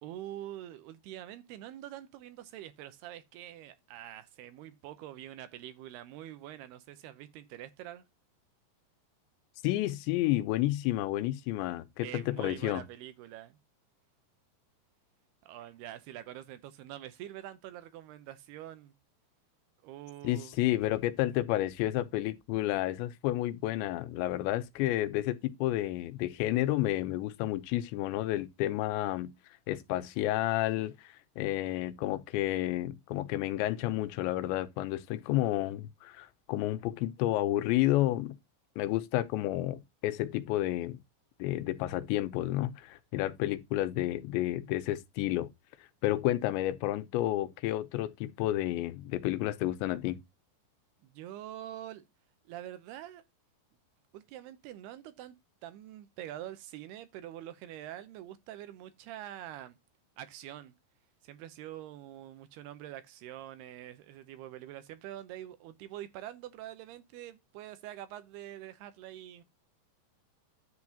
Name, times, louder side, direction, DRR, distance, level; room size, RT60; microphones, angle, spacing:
voice 1, 0.0-8.0 12.0-13.6 15.4-18.9 19.8-20.5 51.0-52.1 52.5-53.2 54.1-55.4 55.6-59.8 60.2-60.7 61.2-69.4, right 12 dB, 75° right, 2.6 m, -45 dB
voice 2, 9.6-12.8 20.2-29.3 29.7-38.4 38.8-41.0 41.4-45.5 46.0-50.2, left 15 dB, 90° left, 3.0 m, -31 dB
10.5 x 7.6 x 2.8 m
omnidirectional pair, 5.1 m